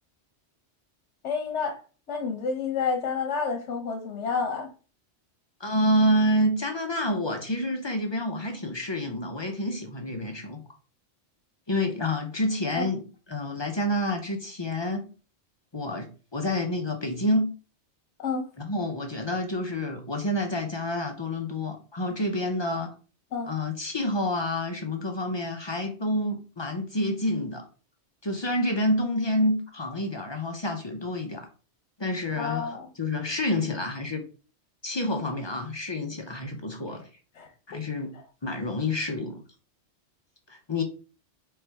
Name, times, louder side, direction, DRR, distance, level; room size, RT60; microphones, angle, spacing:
voice 1, 1.2-1.8 2.1-4.7 12.7-12.9 18.2-18.4 23.3-23.5 32.4-32.9 37.4-37.5 38.1-38.2, left 5 dB, 85° left, 1.1 m, -29 dB
voice 2, 5.6-10.6 11.7-13.0 13.3-15.0 15.7-17.5 18.6-22.9 23.4-27.6 28.2-31.5 32.0-34.2 34.8-37.0 37.7-38.1 38.4-39.4 40.5-40.8, left 1 dB, 30° left, 0.5 m, -28 dB
4.5 x 2.6 x 3.4 m
omnidirectional pair, 1.2 m